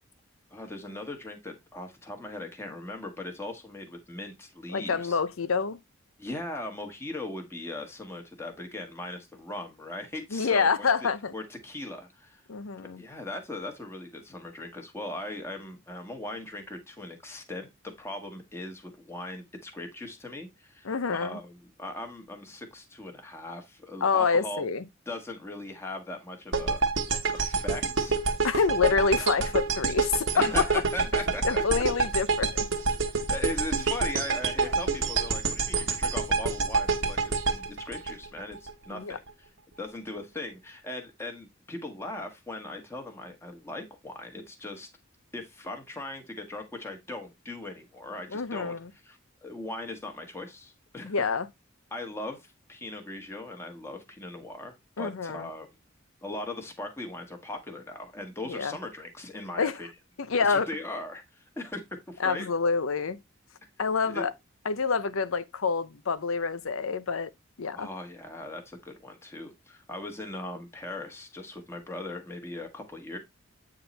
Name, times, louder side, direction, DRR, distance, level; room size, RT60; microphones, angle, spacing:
voice 1, 0.5-5.2 6.2-10.9 11.3-12.4 13.0-17.7 18.0-24.6 25.1-26.8 27.3-28.2 28.8-28.9 29.4-29.5 30.3-31.6 33.1-39.5 39.8-44.9 45.3-48.7 49.0-51.1 51.9-55.7 56.2-59.9 60.5-62.5 64.0-64.3 67.7-73.2, left 2 dB, 10° left, 1.3 m, -39 dB
voice 2, 4.7-5.8 10.3-11.3 12.5-13.0 20.8-21.4 24.0-24.8 28.4-30.5 31.4-32.6 38.9-39.2 48.3-48.9 51.0-51.5 55.0-55.5 58.5-58.7 59.6-59.8 60.2-60.7 62.2-63.2 63.8-64.3 64.6-67.3 67.6-67.9, left 5 dB, 80° left, 0.7 m, -27 dB
sound 1, 26.5-38.7, right 4 dB, 65° right, 1.2 m, -27 dB
8.7 x 3.7 x 4.0 m
head